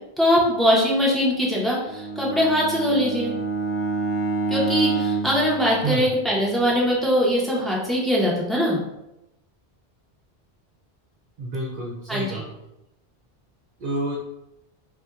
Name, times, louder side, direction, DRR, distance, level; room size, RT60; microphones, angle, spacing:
voice 1, 0.2-3.3 4.5-8.8 12.1-12.4, equal, ahead, -4 dB, 0.6 m, -21 dB
Bowed string instrument, 1.8-6.4, right 3 dB, 50° left, 0.8 m, -28 dB
voice 2, 11.4-12.4 13.8-14.2, right 2 dB, 60° right, -3 dB, 0.7 m, -28 dB
4.1 x 2.1 x 2.3 m, 0.88 s
omnidirectional pair, 1.0 m